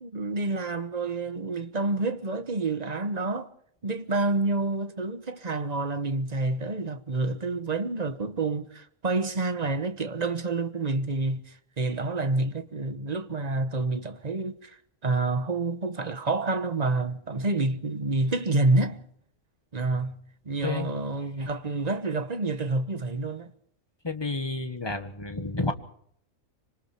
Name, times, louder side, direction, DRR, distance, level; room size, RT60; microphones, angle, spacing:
voice 1, 0.0-3.5 3.8-19.0 19.7-20.1 20.4-23.5, right 3 dB, 30° right, 1.3 m, -28 dB
voice 2, 24.0-25.7, left 2 dB, 20° left, 1.7 m, -30 dB
26.0 x 25.0 x 4.5 m
omnidirectional pair, 1.4 m